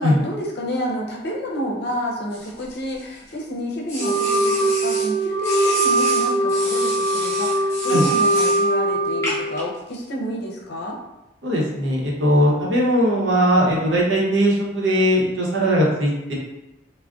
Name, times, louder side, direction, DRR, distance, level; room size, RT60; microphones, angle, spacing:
voice 1, 0.0-11.0, equal, 60° left, -1 dB, 0.6 m, -29 dB
sound 1, 2.3-3.3 3.9-5.1 5.4-8.6 9.2-9.6, left 1 dB, 15° left, 1.0 m, -30 dB
Wind instrument woodwind instrument, 4.0-9.6, right 2 dB, 35° right, 1.1 m, -21 dB
voice 2, 11.4-16.3, equal, 80° right, -3 dB, 0.8 m, -19 dB
2.4 x 2.1 x 3.5 m, 0.94 s
head